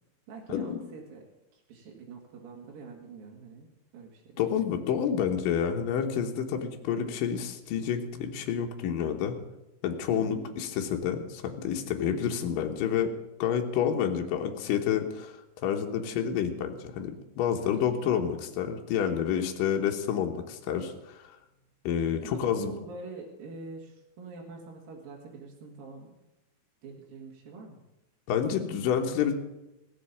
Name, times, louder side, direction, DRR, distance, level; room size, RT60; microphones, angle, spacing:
voice 1, 0.3-1.2 1.5-3.7 3.9-4.4 10.1-10.5 12.0-12.3 17.6-18.2 22.1-26.1 26.8-27.8, right 4 dB, 70° right, -2 dB, 3.7 m, -45 dB
voice 2, 4.4-9.4 9.8-13.1 13.4-21.4 21.8-22.7 28.3-29.3, left 8 dB, 70° left, 3 dB, 2.7 m, -29 dB
16.0 x 7.5 x 8.5 m, 0.94 s
omnidirectional pair, 4.4 m